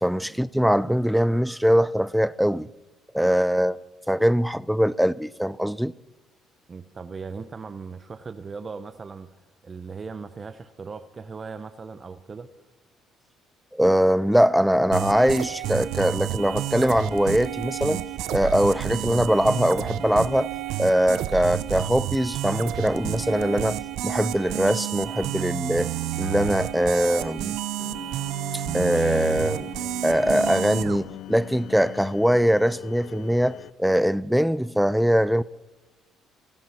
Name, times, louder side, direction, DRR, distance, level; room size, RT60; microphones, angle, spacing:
voice 1, 0.0-2.7 3.1-3.8 4.1-5.9 13.7-18.0 18.3-20.5 20.8-23.8 24.0-25.9 26.2-27.6 28.5-29.7 30.0-35.4, equal, ahead, 0.4 m, -22 dB
voice 2, 6.7-9.3 9.6-12.5, right 5 dB, 35° right, 0.9 m, -38 dB
sound 1, 14.9-31.0, right 13 dB, 80° right, 0.8 m, -30 dB
sound 2, 27.8-33.7, left 14 dB, 70° left, 0.5 m, -42 dB
26.5 x 9.0 x 5.9 m
cardioid pair, 95°, 0 cm